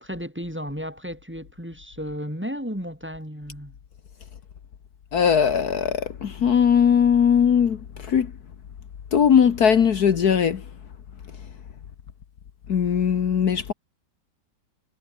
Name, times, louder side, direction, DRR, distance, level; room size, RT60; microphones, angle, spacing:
voice 1, 0.0-3.8, equal, 5° right, 3.3 m, -34 dB
voice 2, 5.1-8.3 9.1-10.6 12.7-13.7, left 7 dB, 65° left, 1.8 m, -19 dB
omnidirectional pair, 1.8 m